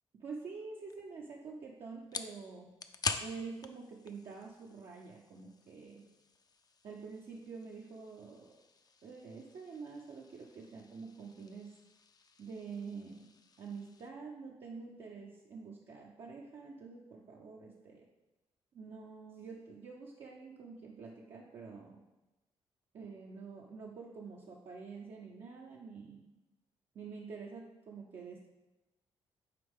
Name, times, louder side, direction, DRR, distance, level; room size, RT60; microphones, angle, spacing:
voice 1, 0.1-2.7 3.2-6.1 6.8-8.6 9.0-11.7 12.4-13.3 13.6-18.1 18.7-22.0 22.9-26.3 26.9-28.5, right 4 dB, 65° right, -2 dB, 0.7 m, -47 dB
sound 1, 0.9-14.1, left 5 dB, 35° left, 0.5 m, -47 dB
6.8 x 4.3 x 3.6 m, 1.0 s
cardioid pair, 65°, 11 cm